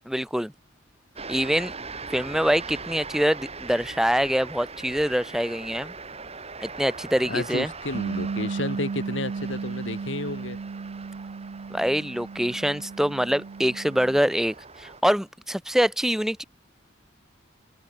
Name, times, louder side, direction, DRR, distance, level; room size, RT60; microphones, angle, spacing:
voice 1, 0.1-0.5 1.3-1.7 2.1-5.9 6.6-7.7 11.7-16.4, equal, ahead, 0.9 m, -25 dB
sound 1, 1.1-15.0, right 4 dB, 35° right, 7.9 m, -41 dB
voice 2, 7.2-10.6, left 2 dB, 75° left, 2.1 m, -32 dB
Bass guitar, 7.9-14.2, right 4 dB, 60° right, 0.5 m, -34 dB
head